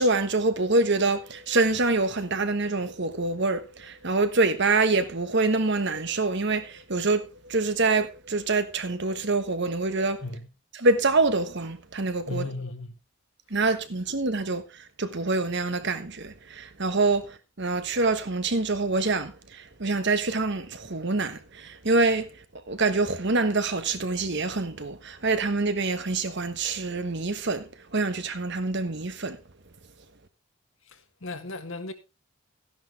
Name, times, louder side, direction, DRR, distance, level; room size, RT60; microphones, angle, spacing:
voice 1, 0.0-10.2 10.7-12.5 13.5-14.6 15.0-22.3 22.7-29.4, right 3 dB, 50° right, 1.3 m, -26 dB
voice 2, 12.3-12.9 31.2-31.9, left 3 dB, 60° left, 1.7 m, -34 dB
13.5 x 10.5 x 3.5 m
head